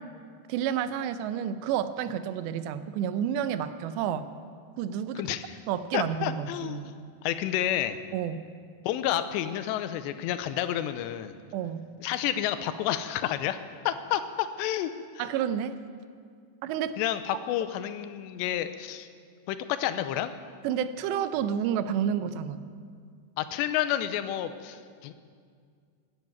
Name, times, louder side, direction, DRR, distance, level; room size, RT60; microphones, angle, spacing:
voice 1, 0.5-4.3 4.8-5.2 5.7-6.9 8.1-8.4 11.5-11.9 15.2-15.7 16.6-17.0 20.6-22.6, right 9 dB, 85° right, 12 dB, 2.9 m, -30 dB
voice 2, 5.2-5.6 5.9-6.9 7.2-8.0 8.9-11.4 12.0-13.6 13.9-14.9 15.2-15.3 17.0-19.1 19.5-20.3 23.4-25.1, left 11 dB, 85° left, 11 dB, 2.9 m, -30 dB
13.0 x 10.5 x 9.2 m, 2.1 s
omnidirectional pair, 4.9 m